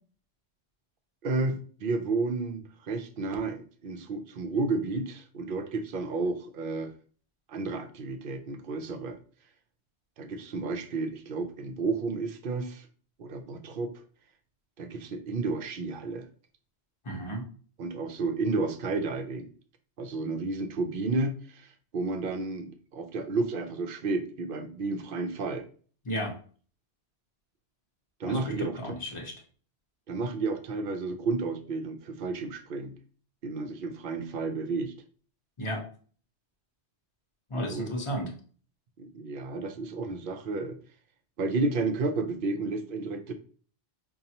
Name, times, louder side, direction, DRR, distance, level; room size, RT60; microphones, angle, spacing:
voice 1, 1.2-6.9 7.5-9.2 10.2-12.9 13.2-13.9 14.8-16.3 17.8-19.5 20.0-25.7 28.2-28.9 30.1-33.0 33.4-34.9 37.5-37.9 39.0-40.8 41.4-43.3, right 3 dB, 60° right, 7 dB, 0.7 m, -32 dB
voice 2, 17.0-17.5 26.1-26.4 28.2-29.3 35.6-35.8 37.5-38.3, equal, 30° left, 1 dB, 0.8 m, -33 dB
5.2 x 2.3 x 2.8 m, 0.43 s
omnidirectional pair, 1.1 m